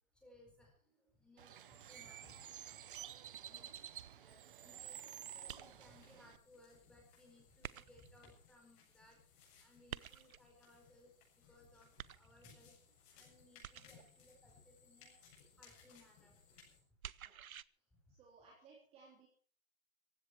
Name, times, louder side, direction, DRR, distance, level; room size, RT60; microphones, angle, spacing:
voice 1, 0.2-2.4 3.5-3.8 4.1-9.2 9.6-11.1 11.5-12.8 13.1-15.2 15.6-16.4, left 1 dB, ahead, 1 dB, 4.6 m, -64 dB
Bird, 1.4-6.4, right 10 dB, 40° right, 1.0 m, -51 dB
sound 1, 5.2-16.8, left 6 dB, 25° left, 7.6 m, -66 dB
sound 2, 5.5-6.0 7.6-8.2 9.9-10.5 12.0-12.6 13.6-14.2 17.0-17.6, right 9 dB, 85° right, 0.9 m, -50 dB
voice 2, 18.1-19.3, right 4 dB, 15° right, -1 dB, 3.3 m, -62 dB
18.0 x 16.0 x 4.6 m, 0.44 s
hypercardioid pair, 165°, 41 cm